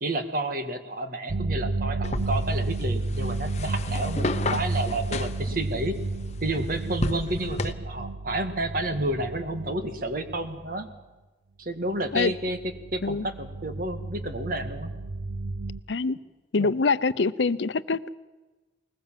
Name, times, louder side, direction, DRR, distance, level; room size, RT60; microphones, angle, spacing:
voice 1, 0.0-6.0 6.4-10.9 11.6-12.6 12.9-14.9 16.6-16.7, right 1 dB, 50° right, 8 dB, 1.8 m, -30 dB
sound 1, 1.3-11.0 11.9-15.8, right 2 dB, 85° right, 0.7 m, -32 dB
sound 2, 2.0-7.7, left 2 dB, 40° left, 0.9 m, -33 dB
voice 2, 16.5-18.1, left 4 dB, 85° left, 15 dB, 0.7 m, -24 dB
20.5 x 20.5 x 7.5 m, 1.2 s
head